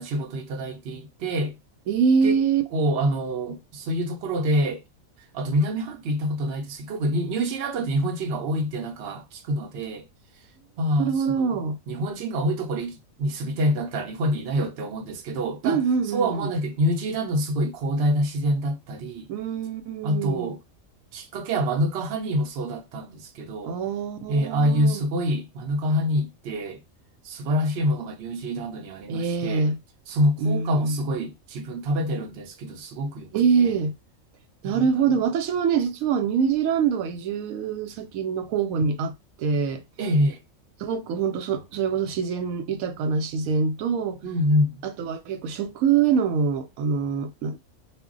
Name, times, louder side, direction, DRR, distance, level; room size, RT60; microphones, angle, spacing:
voice 1, 0.0-1.6 2.2-2.4 2.7-4.8 5.3-10.0 10.8-11.6 11.9-19.3 20.0-20.6 21.1-23.8 24.3-26.8 27.2-29.7 30.1-33.3 33.6-33.7 34.6-35.1 40.0-40.4 44.2-44.8, equal, 65° right, 0.7 m, -26 dB
voice 2, 1.9-2.7 11.0-11.8 15.6-16.5 19.3-20.5 23.6-25.0 29.1-29.8 30.4-31.0 33.3-33.9 34.6-39.1 39.4-39.8 40.8-44.2 44.8-47.7, right 6 dB, 85° right, 1.0 m, -24 dB
2.2 x 2.1 x 3.6 m
omnidirectional pair, 1.4 m